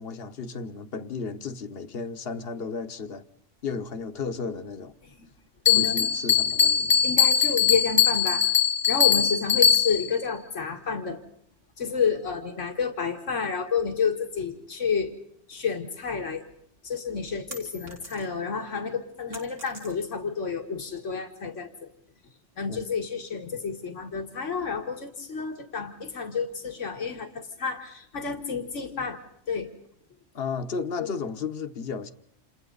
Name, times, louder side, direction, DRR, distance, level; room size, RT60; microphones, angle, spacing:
voice 1, 0.0-3.3 3.6-4.9 5.8-7.0 22.7-22.8 30.3-32.1, left 5 dB, 55° left, 1.3 m, -34 dB
voice 2, 5.7-6.1 7.0-8.5 8.9-11.2 11.8-15.1 15.5-16.5 16.8-21.9 22.6-29.2 29.5-29.7 31.0-31.1, left 5 dB, 85° left, 2.2 m, -30 dB
Bell, 5.7-10.2, left 8 dB, 25° left, 0.9 m, -21 dB
sound 1, 17.5-18.5 18.9-20.3, right 1 dB, 80° right, 4.2 m, -45 dB
29.0 x 28.0 x 4.0 m
omnidirectional pair, 1.2 m